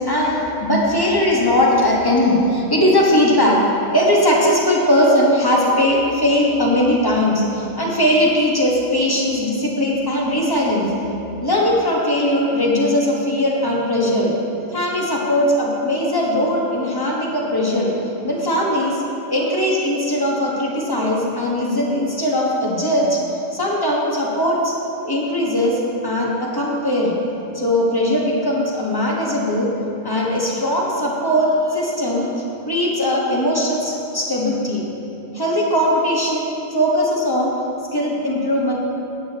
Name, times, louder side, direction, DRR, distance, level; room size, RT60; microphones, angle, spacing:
voice 1, 0.0-3.6 3.9-10.9 11.4-14.3 14.7-17.9 18.2-19.0 19.3-23.2 23.5-24.7 25.0-27.1 27.5-29.7 30.0-34.8 35.3-37.5 37.9-38.7, left 1 dB, 15° left, -4 dB, 1.5 m, -19 dB
15.0 x 8.9 x 3.0 m, 2.9 s
omnidirectional pair, 1.4 m